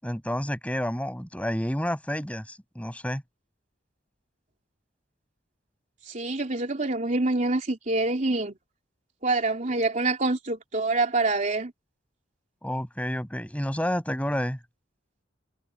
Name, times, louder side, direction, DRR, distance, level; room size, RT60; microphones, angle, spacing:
voice 1, 0.0-3.2 12.6-14.6, equal, 5° left, 7.7 m, -30 dB
voice 2, 6.0-8.6 9.2-11.7, right 2 dB, 40° right, 3.2 m, -26 dB
head